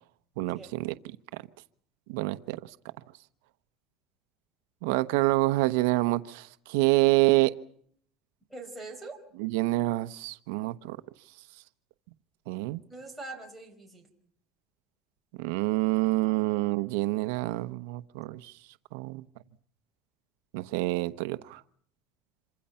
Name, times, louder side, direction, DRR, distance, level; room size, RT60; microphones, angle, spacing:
voice 1, 0.4-0.9 2.1-2.7 4.8-7.5 9.4-11.0 12.5-12.8 15.4-18.5 18.9-19.2 20.5-21.6, right 19 dB, 85° right, 11 dB, 0.9 m, -27 dB
voice 2, 8.5-9.2 12.9-14.1, right 2 dB, ahead, -2 dB, 4.9 m, -42 dB
27.0 x 25.0 x 5.7 m, 0.63 s
cardioid pair, 180°, 0 cm